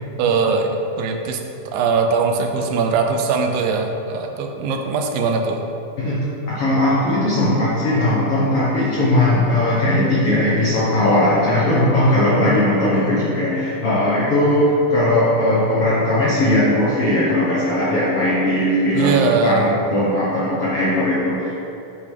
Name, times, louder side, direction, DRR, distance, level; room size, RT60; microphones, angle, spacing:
voice 1, 0.2-1.4 1.7-5.6 18.9-19.7, right 4 dB, 80° right, 4 dB, 2.4 m, -20 dB
voice 2, 6.5-21.7, left 1 dB, 60° left, -8 dB, 1.5 m, -18 dB
10.0 x 7.6 x 3.4 m, 2.9 s
omnidirectional pair, 4.2 m